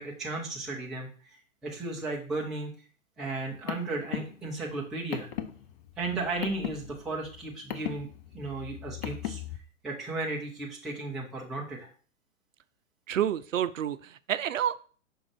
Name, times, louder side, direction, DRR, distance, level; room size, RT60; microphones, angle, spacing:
voice 1, 0.0-1.4 1.6-2.7 3.2-5.3 6.0-8.1 8.3-9.4 9.8-11.9, right 3 dB, ahead, -4 dB, 0.4 m, -35 dB
Car, 3.3-9.6, left 11 dB, 35° left, 0.7 m, -38 dB
voice 2, 13.1-14.8, right 10 dB, 70° right, 15 dB, 0.6 m, -29 dB
5.4 x 3.8 x 5.9 m, 0.41 s
hypercardioid pair, 125°, 40 cm